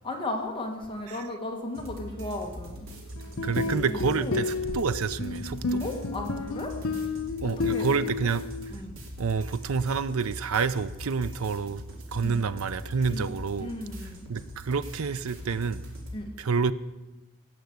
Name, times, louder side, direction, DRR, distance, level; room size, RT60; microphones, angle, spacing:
voice 1, 0.0-2.9 3.8-4.4 5.8-6.7 7.4-8.3 8.7-8.9 12.2-12.4 13.1-13.2 13.6-14.3 16.1-16.3, left 1 dB, 25° left, 1.6 m, -35 dB
sound 1, 1.7-16.2, equal, 60° right, 2.9 m, -42 dB
sound 2, 3.2-8.7, left 4 dB, 70° left, 0.9 m, -31 dB
voice 2, 3.4-5.8 7.4-8.4 9.2-11.8 12.1-13.7 14.3-15.8 16.4-16.7, right 5 dB, 80° right, 0.6 m, -28 dB
17.5 x 6.0 x 8.0 m
head